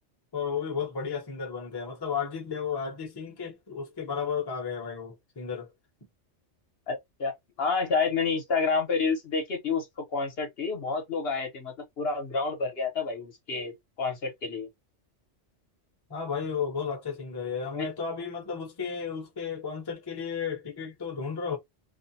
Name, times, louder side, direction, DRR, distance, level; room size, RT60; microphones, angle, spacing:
voice 1, 0.3-5.7 16.1-21.6, left 6 dB, 25° left, 0.7 m, -33 dB
voice 2, 6.9-7.3 7.6-9.9 10.1-14.7 17.7-17.9, left 4 dB, 60° left, 1.0 m, -29 dB
2.5 x 2.1 x 2.6 m
omnidirectional pair, 1.2 m